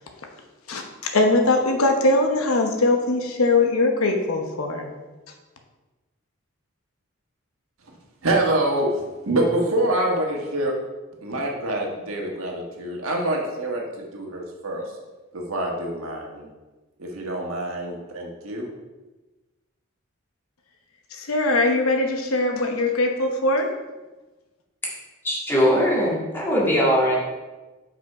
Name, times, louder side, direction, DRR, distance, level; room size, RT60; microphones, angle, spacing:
voice 1, 1.1-4.9 21.1-23.7, left 2 dB, 85° left, 3 dB, 0.9 m, -21 dB
voice 2, 8.2-10.7 11.2-14.9 15.3-16.5 17.0-18.7, right 1 dB, 80° right, 0 dB, 1.4 m, -26 dB
voice 3, 25.2-27.2, equal, 10° left, -5 dB, 1.8 m, -20 dB
5.5 x 5.5 x 4.8 m, 1.2 s
head